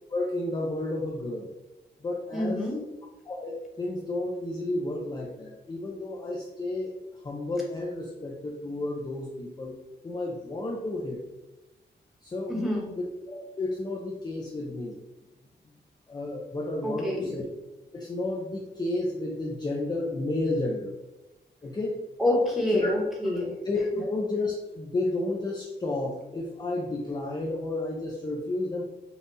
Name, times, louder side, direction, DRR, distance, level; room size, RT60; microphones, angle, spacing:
voice 1, 0.1-1.5 2.0-2.6 3.2-9.8 10.0-11.2 12.2-12.6 13.0-15.0 16.1-17.4 17.9-20.9 21.6-22.0 22.8-22.9 23.6-28.9, left 2 dB, 25° left, -2 dB, 0.5 m, -32 dB
voice 2, 2.3-2.8 12.5-12.9 16.8-17.3 22.2-23.5, left 1 dB, ahead, -3 dB, 1.1 m, -26 dB
5.4 x 2.4 x 4.0 m, 1.0 s
wide cardioid pair, 165°, 18 cm